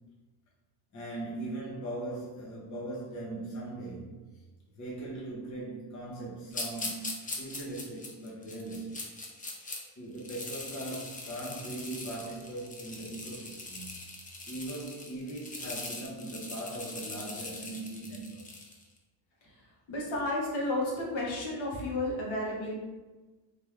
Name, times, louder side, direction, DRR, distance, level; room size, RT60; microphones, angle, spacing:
voice 1, 0.9-4.2 4.8-9.1 9.4-9.5 10.0-14.0 14.4-18.5, right 2 dB, 35° left, -5 dB, 0.9 m, -40 dB
sound 1, 6.5-9.8 10.2-18.8, left 2 dB, 20° left, 0.3 m, -41 dB
voice 2, 19.9-22.8, left 1 dB, 70° left, -3 dB, 1.2 m, -32 dB
3.5 x 2.6 x 4.3 m, 1.2 s
cardioid pair, 175°, 48 cm